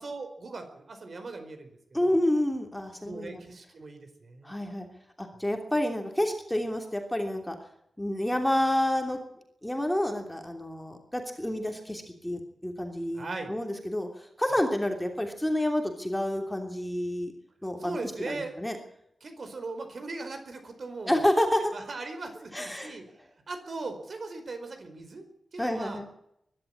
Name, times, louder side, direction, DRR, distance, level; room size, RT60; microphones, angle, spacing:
voice 1, 0.0-1.7 2.0-2.2 3.0-4.6 13.1-13.5 14.5-14.6 17.8-18.5 19.2-21.2 21.7-23.2 23.5-25.3 25.5-26.0, right 3 dB, 50° right, 7 dB, 4.7 m, -39 dB
voice 2, 1.9-3.4 4.4-4.9 5.2-7.5 8.0-9.2 9.6-17.3 17.6-18.0 18.3-18.8 21.1-21.7 22.5-22.9 25.6-26.1, left 1 dB, 5° left, 3 dB, 3.0 m, -29 dB
22.5 x 12.0 x 9.9 m, 0.75 s
wide cardioid pair, 155°, 0 cm